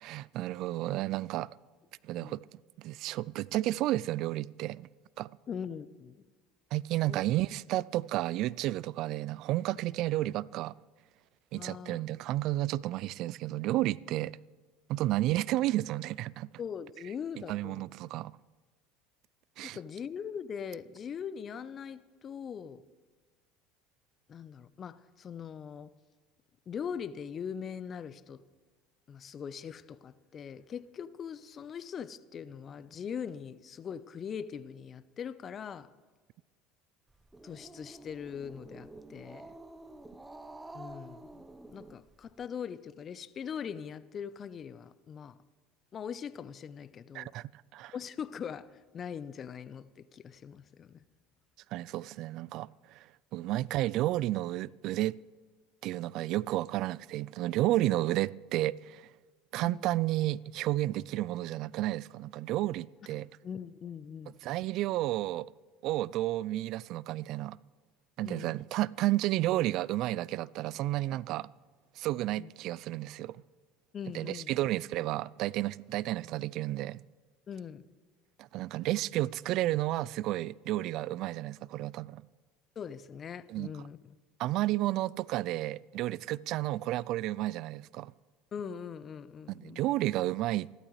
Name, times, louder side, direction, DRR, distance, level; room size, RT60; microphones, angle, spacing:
voice 1, 0.0-1.5 2.0-2.4 2.8-4.9 5.2-5.3 6.7-10.7 11.5-14.4 14.9-16.5 17.5-18.3 19.6-19.8 47.1-47.9 51.7-53.1 53.3-55.2 55.8-59.1 59.5-63.3 64.4-65.5 65.8-67.6 68.2-71.5 72.0-73.4 74.1-77.0 78.4-82.2 83.5-83.7 84.4-88.1 89.5-90.7, right 16 dB, 55° right, 0.3 m, -32 dB
voice 2, 5.5-6.3 7.0-7.2 11.5-12.0 16.6-17.8 19.6-22.8 24.3-25.9 26.7-28.4 29.1-35.9 37.4-39.5 40.7-41.4 41.7-45.4 45.9-47.3 47.9-51.0 59.6-59.9 63.1-64.3 68.2-68.6 72.4-72.5 73.9-74.5 77.5-77.8 82.8-84.1 88.5-89.8, left 7 dB, 40° left, 0.8 m, -41 dB
Growling, 37.1-42.4, right 2 dB, 15° right, 0.9 m, -49 dB
28.0 x 12.0 x 3.2 m
hypercardioid pair, 75°, 0 cm